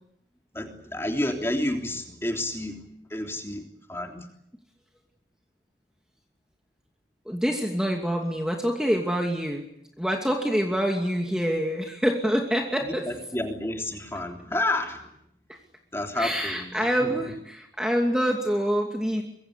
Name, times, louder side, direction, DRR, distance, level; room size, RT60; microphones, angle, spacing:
voice 1, 0.5-2.8 3.1-3.6 3.9-4.3 12.8-15.1 15.9-16.7 17.0-17.3, left 1 dB, 15° left, 3 dB, 3.3 m, -30 dB
voice 2, 7.3-9.6 10.0-13.1 16.1-19.2, equal, 5° right, 1 dB, 2.6 m, -26 dB
25.0 x 23.5 x 8.3 m, 0.75 s
head